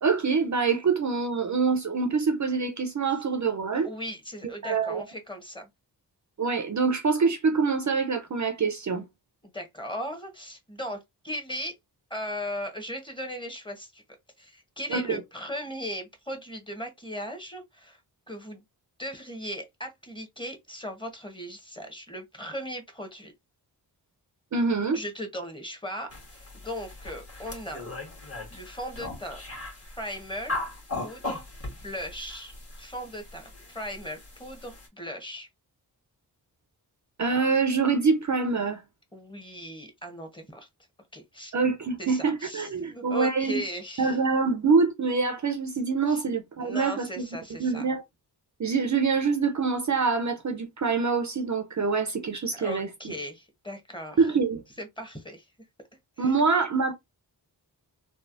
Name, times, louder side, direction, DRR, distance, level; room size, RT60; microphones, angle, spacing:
voice 1, 0.0-3.9 4.6-5.0 6.4-9.1 14.9-15.2 24.5-25.0 37.2-38.8 41.5-43.6 44.0-47.3 47.6-48.0 48.6-53.1 54.2-54.6 56.2-56.9, right 4 dB, 45° right, 0.6 m, -25 dB
voice 2, 3.8-5.7 9.4-11.7 12.1-14.0 14.4-18.0 18.3-18.6 19.0-23.3 24.9-27.8 28.5-29.4 30.0-30.6 31.0-31.4 31.7-35.5 39.1-40.7 41.1-41.5 42.0-44.2 46.1-46.2 46.6-47.9 52.6-54.2 54.8-55.5 56.2-56.4, equal, 10° left, 1.1 m, -38 dB
sound 1, 26.1-34.9, left 2 dB, 35° left, 1.4 m, -39 dB
3.2 x 2.0 x 2.5 m
cardioid pair, 55°, 42 cm